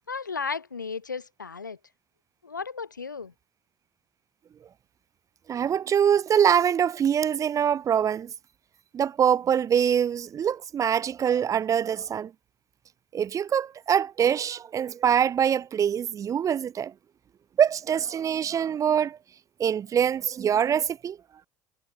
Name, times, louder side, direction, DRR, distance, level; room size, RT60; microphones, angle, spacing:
voice 1, 0.0-1.8 2.4-3.3, left 5 dB, 80° left, 2.6 m, -34 dB
voice 2, 5.5-8.3 8.9-12.3 13.1-16.9 17.6-19.2 19.6-21.2, right 8 dB, 35° right, 1.0 m, -24 dB
figure-of-eight pair, 65°, 10 cm